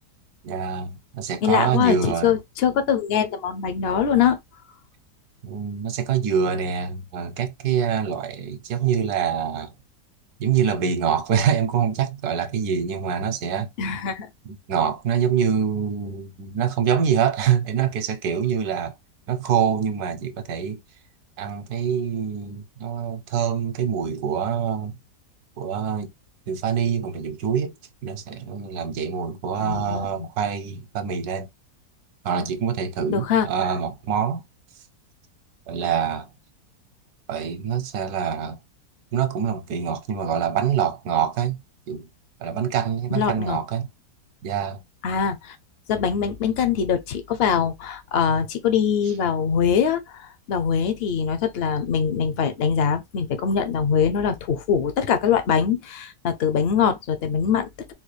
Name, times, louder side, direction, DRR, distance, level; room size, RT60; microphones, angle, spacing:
voice 1, 0.4-2.4 5.4-9.7 10.4-13.7 14.4-18.9 19.3-20.8 21.4-25.0 25.6-26.1 26.5-27.8 28.0-31.5 32.2-34.4 35.7-36.3 37.3-38.6 39.1-41.6 41.9-42.1 42.4-43.9 44.4-44.8, right 8 dB, 70° right, 1.1 m, -25 dB
voice 2, 1.4-4.4 13.8-14.3 29.6-30.3 33.1-33.5 43.1-43.6 45.0-45.6 45.9-57.9, left 7 dB, 65° left, 0.6 m, -23 dB
3.9 x 2.3 x 3.1 m
omnidirectional pair, 1.8 m